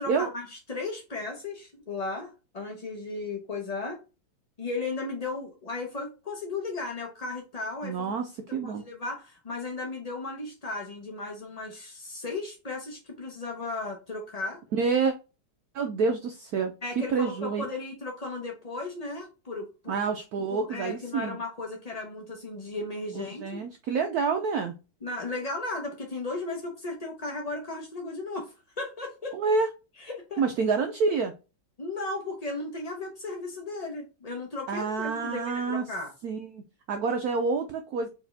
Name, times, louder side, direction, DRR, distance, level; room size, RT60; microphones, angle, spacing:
voice 1, 0.0-4.0 4.6-8.1 8.6-14.6 16.8-19.9 20.5-23.6 25.0-29.4 30.0-30.4 31.8-36.1, left 3 dB, 45° left, 1 dB, 0.5 m, -35 dB
voice 2, 7.8-8.8 14.8-15.1 15.7-16.7 17.1-17.7 19.9-21.4 23.1-24.7 29.3-29.7 30.4-31.3 34.7-35.8 36.2-36.6 36.9-38.1, right 4 dB, 70° right, 6 dB, 0.9 m, -28 dB
4.6 x 3.5 x 3.3 m, 0.30 s
omnidirectional pair, 2.1 m